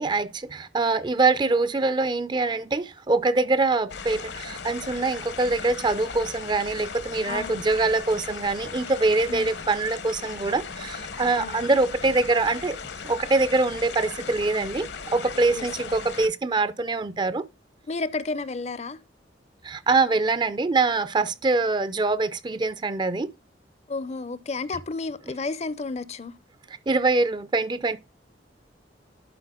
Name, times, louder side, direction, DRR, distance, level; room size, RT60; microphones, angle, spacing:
voice 1, 0.0-12.8 13.0-17.4 19.6-23.3 26.9-28.0, right 3 dB, 25° right, 0.4 m, -24 dB
sound 1, 3.9-16.3, left 5 dB, 65° left, 0.8 m, -37 dB
voice 2, 7.3-7.6 9.3-9.5 11.4-11.6 15.6-15.7 17.9-19.0 23.9-26.3, left 3 dB, 35° left, 0.5 m, -32 dB
11.5 x 4.4 x 3.6 m
head